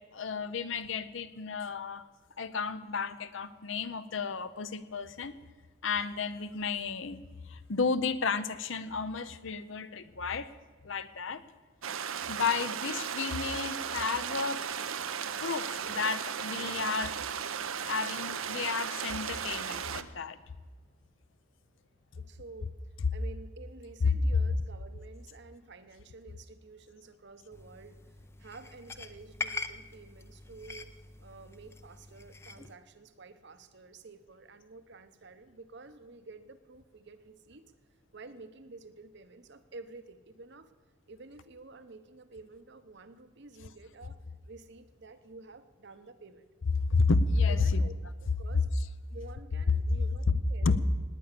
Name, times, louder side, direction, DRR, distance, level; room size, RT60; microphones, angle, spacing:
voice 1, 0.1-2.0 2.4-5.3 5.8-10.5 10.8-11.4 12.3-14.6 15.4-17.1 17.8-20.4 24.0-24.1 46.9-47.9 50.3-50.4 50.6-50.7, left 4 dB, 65° left, 12 dB, 0.7 m, -31 dB
sound 1, 11.8-20.0, right 7 dB, 75° right, 0.8 m, -36 dB
voice 2, 22.2-22.7 23.1-28.0 28.4-30.9 31.2-37.6 38.1-40.7 41.1-44.2 44.5-46.5 47.5-47.9 48.2-48.7 49.1-50.8, right 3 dB, 55° right, 11 dB, 1.0 m, -50 dB
sound 2, 27.5-32.7, left 4 dB, 10° left, 0.5 m, -43 dB
19.0 x 9.3 x 6.8 m, 1.4 s
head